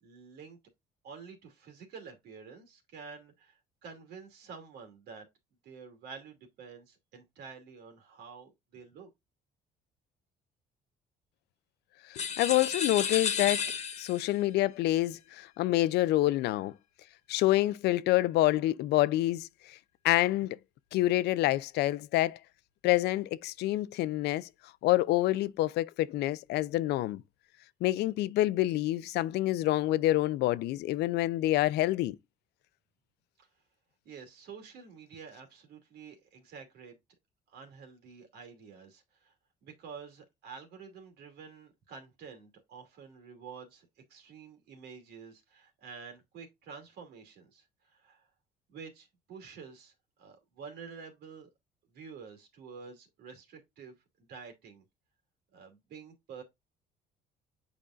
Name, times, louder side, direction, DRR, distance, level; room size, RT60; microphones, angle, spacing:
voice 1, 0.0-0.6 1.0-5.2 5.6-9.1 33.4-33.5 34.0-37.0 37.5-39.3 39.6-47.6 47.9-48.3 48.7-51.5 51.9-53.9 54.3-54.8 55.5-56.4, right 5 dB, 75° right, 2.6 m, -49 dB
voice 2, 12.1-13.6 14.0-16.7 17.3-19.8 20.0-20.6 20.9-22.4 22.8-24.5 24.8-27.2 27.8-32.2, left 16 dB, 80° left, 0.5 m, -27 dB
sound 1, 12.1-14.3, left 7 dB, 40° left, 1.2 m, -32 dB
8.6 x 5.2 x 2.5 m
cardioid pair, 110°, 17 cm